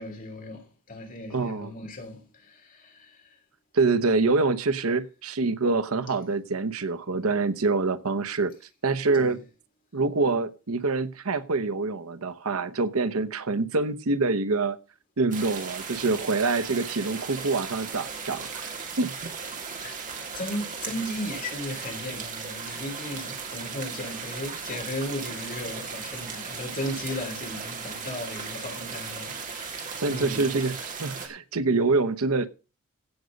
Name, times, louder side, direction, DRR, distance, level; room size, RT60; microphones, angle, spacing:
voice 1, 0.0-3.4 9.2-9.4 19.8-20.0 20.3-30.7, left 1 dB, 40° left, 3.4 m, -36 dB
voice 2, 1.3-1.7 3.7-8.5 8.8-9.4 9.9-14.8 15.2-18.5 19.0-19.3 30.0-32.5, right 3 dB, 80° right, 0.9 m, -25 dB
sound 1, 15.3-31.3, right 5 dB, 40° right, 2.9 m, -37 dB
16.0 x 6.5 x 5.2 m
head